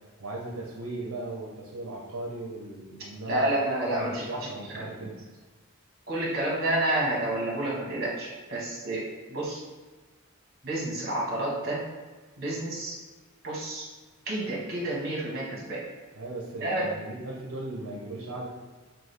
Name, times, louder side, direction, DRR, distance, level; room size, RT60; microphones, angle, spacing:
voice 1, 0.2-3.5 3.8-5.1 16.1-18.5, right 2 dB, 80° right, -2 dB, 0.7 m, -37 dB
voice 2, 3.3-5.1 6.1-9.0 9.3-9.6 10.6-11.8 12.4-13.0 13.4-13.8 14.3-15.8 16.6-16.9, right 1 dB, 45° right, -4 dB, 1.3 m, -29 dB
6.1 x 2.3 x 3.3 m, 1.3 s
head